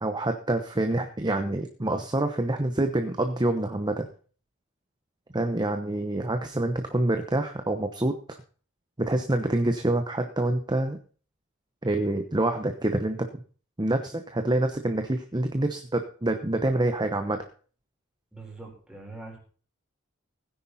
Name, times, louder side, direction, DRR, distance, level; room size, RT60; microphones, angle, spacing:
voice 1, 0.0-4.1 5.3-8.4 9.0-11.0 11.8-13.4 13.8-17.4, right 1 dB, 20° right, 6 dB, 1.0 m, -26 dB
voice 2, 18.3-19.4, right 3 dB, 5° right, -1 dB, 4.6 m, -43 dB
17.0 x 9.9 x 4.2 m, 0.41 s
head